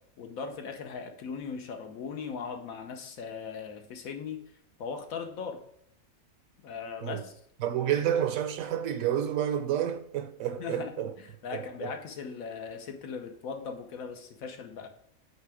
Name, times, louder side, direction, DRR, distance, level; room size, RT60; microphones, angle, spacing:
voice 1, 0.2-4.4 4.8-5.6 6.6-7.3 10.6-11.1 11.4-14.9, left 5 dB, 80° left, 1.3 m, -38 dB
voice 2, 7.6-11.1 11.5-11.9, right 10 dB, 75° right, 1.0 m, -30 dB
8.7 x 3.4 x 4.8 m
omnidirectional pair, 1.4 m